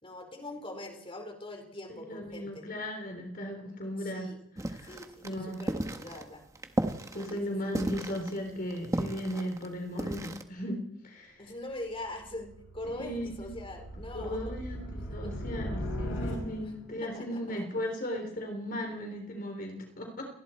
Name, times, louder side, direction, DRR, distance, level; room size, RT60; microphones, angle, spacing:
voice 1, 0.0-2.6 4.0-4.4 4.9-6.5 7.3-7.7 11.4-14.5 15.2-15.5 16.6-16.7 17.0-17.7, left 1 dB, 30° left, 3 dB, 4.6 m, -43 dB
voice 2, 1.9-4.3 4.7-4.9 5.2-5.6 7.1-11.4 13.0-13.5 14.1-20.3, equal, 50° left, 3 dB, 3.8 m, -36 dB
sound 1, 4.6-10.4, right 1 dB, 15° right, 1.5 m, -35 dB
sound 2, 11.7-16.9, equal, 85° left, 6.0 m, -39 dB
29.0 x 20.0 x 4.5 m, 0.73 s
head